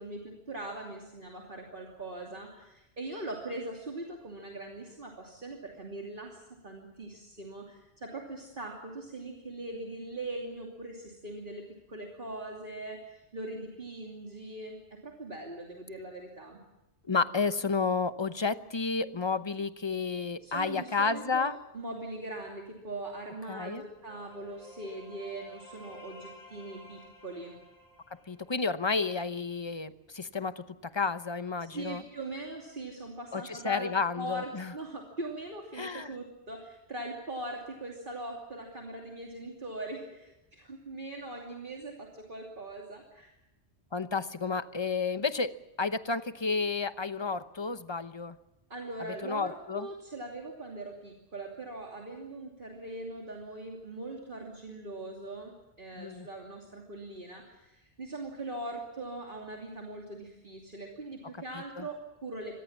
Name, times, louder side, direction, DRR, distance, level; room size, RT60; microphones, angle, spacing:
voice 1, 0.0-11.6 11.9-14.8 15.0-16.6 20.4-27.6 31.7-43.3 48.7-62.6, right 2 dB, 50° right, 0 dB, 3.0 m, -41 dB
voice 2, 17.1-21.6 23.5-23.8 28.3-32.0 33.3-34.7 35.7-36.2 43.9-48.4 49.2-49.9 56.0-56.3 61.8-61.9, left 4 dB, 25° left, 12 dB, 0.8 m, -31 dB
sound 1, 23.4-29.1, equal, 55° left, 7.2 m, -53 dB
25.0 x 20.0 x 7.3 m, 0.93 s
omnidirectional pair, 1.2 m